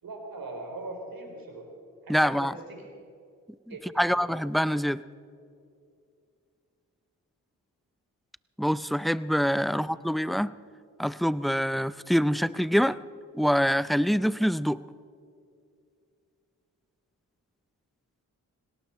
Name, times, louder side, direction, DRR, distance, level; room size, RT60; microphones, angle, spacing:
voice 1, 0.0-1.7 2.0-2.8 3.7-4.3 9.7-9.9, right 2 dB, 70° right, 2 dB, 3.7 m, -41 dB
voice 2, 2.1-2.5 3.7-5.0 8.6-10.5 11.0-13.0 13.3-14.8, equal, ahead, 17 dB, 0.4 m, -25 dB
18.5 x 18.0 x 4.3 m, 2.4 s
supercardioid pair, 45°, 36 cm